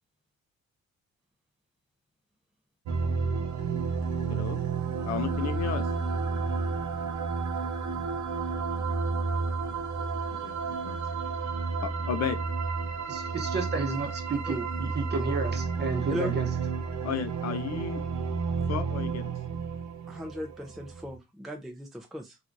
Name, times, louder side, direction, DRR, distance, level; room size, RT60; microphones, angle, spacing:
sound 1, 2.8-21.2, right 5 dB, 70° right, 0.7 m, -31 dB
voice 1, 4.3-4.6 5.1-5.8 10.4-10.5 10.8-11.0 11.8-12.4 17.0-18.0 18.7-19.3, left 8 dB, 60° left, 0.5 m, -33 dB
voice 2, 13.1-16.5, right 3 dB, 35° right, 0.9 m, -32 dB
voice 3, 20.1-22.4, left 1 dB, ahead, 0.4 m, -37 dB
2.9 x 2.4 x 2.5 m
cardioid pair, 90°, 30 cm